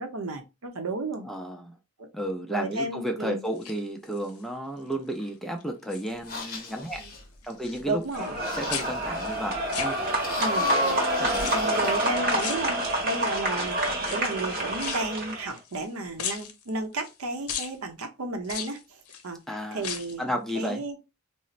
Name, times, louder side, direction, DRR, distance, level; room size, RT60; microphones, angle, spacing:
voice 1, 0.0-1.3 2.0-2.1 2.5-3.4 7.0-7.1 7.9-8.4 10.4-10.8 11.5-19.0 19.2-19.4 19.7-21.0, right 2 dB, 75° right, 0.6 m, -33 dB
voice 2, 1.2-1.7 2.1-7.0 7.4-10.0 11.2-11.5 19.5-19.9 20.2-20.8, equal, ahead, 0.3 m, -33 dB
sound 1, 3.5-4.4 4.9-5.3 5.6-6.6 6.9-8.4 8.7-10.5 11.3-11.9 12.4-13.2 14.0-15.9 16.2-17.2 17.5-17.8 18.4-19.3 19.7-20.2 20.6-20.7, left 8 dB, 90° left, 0.6 m, -37 dB
sound 2, 6.1-12.1, left 4 dB, 40° left, 0.7 m, -42 dB
sound 3, 8.1-15.5, right 1 dB, 45° right, 1.0 m, -27 dB
4.0 x 2.0 x 2.4 m
head